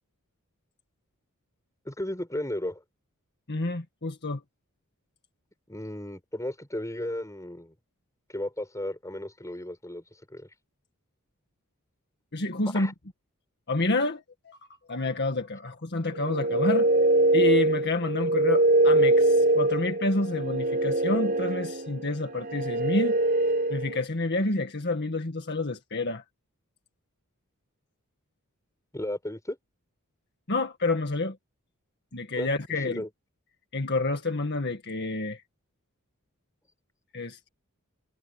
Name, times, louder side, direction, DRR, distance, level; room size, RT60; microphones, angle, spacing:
voice 1, 1.8-2.8 5.7-7.7 8.3-10.5 12.6-12.9 28.9-29.6 32.4-32.5 32.8-33.1, left 1 dB, 15° left, 6.8 m, -34 dB
voice 2, 3.5-4.4 12.3-12.9 13.7-14.6 14.9-16.9 17.3-23.2 23.7-26.2 30.5-31.4 32.1-33.0 33.7-35.4 37.1-37.5, left 2 dB, 50° left, 1.8 m, -29 dB
sound 1, 16.1-24.0, right 2 dB, 45° right, 5.2 m, -23 dB
head